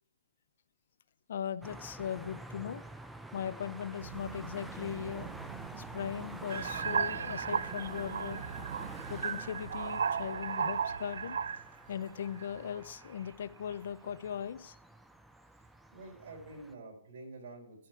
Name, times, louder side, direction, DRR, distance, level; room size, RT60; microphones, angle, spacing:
voice 1, 1.3-2.8 3.3-5.3 5.8-8.4 9.1-11.4 11.9-14.7, left 8 dB, 60° left, 16 dB, 0.6 m, -39 dB
sound 1, 1.6-16.7, right 1 dB, 5° right, 0.6 m, -49 dB
sound 2, 4.0-9.2, right 7 dB, 35° right, 1.4 m, -46 dB
sound 3, 6.5-11.7 12.4-12.8, right 6 dB, 75° right, 0.4 m, -35 dB
voice 2, 15.9-17.9, right 2 dB, 55° right, 0 dB, 4.1 m, -48 dB
14.0 x 6.5 x 4.5 m, 0.65 s
hypercardioid pair, 150°, 0 cm